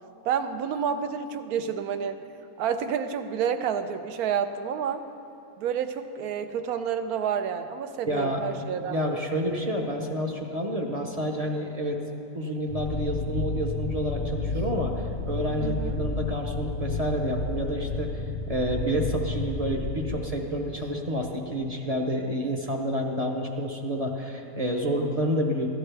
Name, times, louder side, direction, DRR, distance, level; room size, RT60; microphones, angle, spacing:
voice 1, 0.3-2.2 2.6-5.0 5.6-9.2 15.6-16.0, right 7 dB, 80° right, 9 dB, 1.1 m, -29 dB
voice 2, 8.0-8.4 8.7-12.0 12.3-14.9 15.2-25.7, equal, 35° right, 1 dB, 0.7 m, -29 dB
sound 1, 12.7-20.2, left 3 dB, 45° left, 0.7 m, -31 dB
16.5 x 11.5 x 3.4 m, 2.8 s
omnidirectional pair, 1.6 m